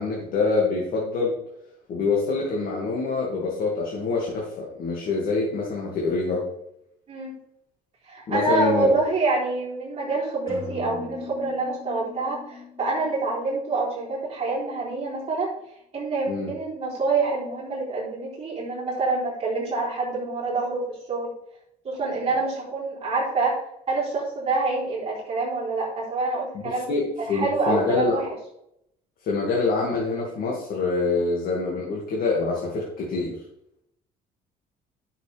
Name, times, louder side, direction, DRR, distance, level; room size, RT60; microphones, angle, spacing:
voice 1, 0.0-1.3 1.9-6.4 8.3-8.9 16.3-16.5 26.6-27.0 27.3-28.2 29.3-33.4, left 3 dB, 60° left, -3 dB, 2.3 m, -25 dB
voice 2, 7.1-7.4 8.1-15.5 15.9-21.3 21.8-23.6 23.9-28.3, right 3 dB, 35° right, -6 dB, 3.8 m, -26 dB
sound 1, 10.5-14.3, left 4 dB, 30° left, 3.8 m, -40 dB
11.0 x 6.6 x 3.5 m, 0.78 s
cardioid pair, 110°, 17 cm